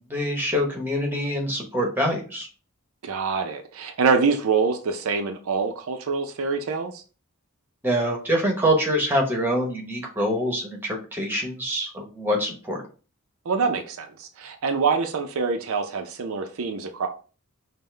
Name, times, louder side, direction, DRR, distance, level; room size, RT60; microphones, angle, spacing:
voice 1, 0.1-2.5 7.8-12.8, equal, 10° right, 1.0 m, -25 dB
voice 2, 3.0-7.0 13.5-17.1, right 5 dB, 65° right, 0.5 m, -25 dB
5.4 x 2.1 x 3.2 m
head